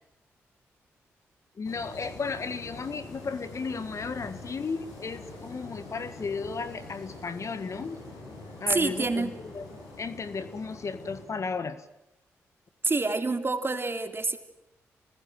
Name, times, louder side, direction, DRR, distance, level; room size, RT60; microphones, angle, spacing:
sound 1, 1.6-11.2, left 2 dB, 90° left, 7.0 m, -45 dB
voice 1, 1.6-8.0 8.6-9.7 10.0-11.8, left 4 dB, 55° left, 12 dB, 1.7 m, -34 dB
voice 2, 8.7-9.4 12.8-14.4, right 3 dB, 35° right, 6 dB, 3.3 m, -27 dB
26.0 x 20.0 x 9.2 m, 0.91 s
supercardioid pair, 45°, 6 cm